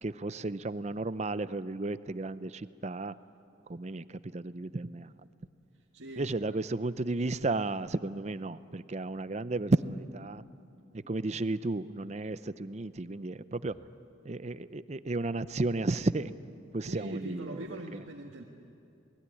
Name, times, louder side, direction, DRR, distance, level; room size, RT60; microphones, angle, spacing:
voice 1, 0.0-3.1 3.7-5.1 6.2-10.4 10.9-13.7 14.2-16.3 16.7-17.4 17.7-17.8, right 2 dB, 35° right, 14 dB, 0.6 m, -33 dB
voice 2, 5.7-6.6 13.7-13.8 16.8-18.4, right 1 dB, 85° right, -1 dB, 1.8 m, -43 dB
28.0 x 20.5 x 9.9 m, 2.6 s
head